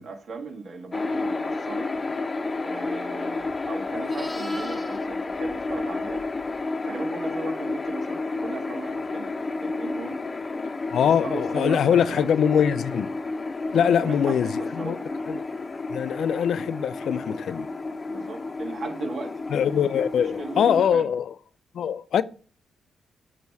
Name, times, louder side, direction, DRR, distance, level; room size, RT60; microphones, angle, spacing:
voice 1, 0.0-1.9 2.6-6.2 6.8-10.2 11.0-12.3 13.7-15.1 18.1-19.4 19.9-21.1, right 4 dB, 60° right, 1.7 m, -37 dB
sound 1, 0.9-20.9, left 3 dB, 35° left, 0.8 m, -31 dB
Livestock farm animals working animals, 3.4-6.6 11.0-11.2, equal, ahead, 1.3 m, -43 dB
voice 2, 10.9-13.1 13.7-15.0 15.3-15.4 15.9-17.7 19.5-21.3 21.7-22.2, left 8 dB, 70° left, 0.4 m, -23 dB
8.3 x 3.0 x 4.6 m
supercardioid pair, 50°, 0 cm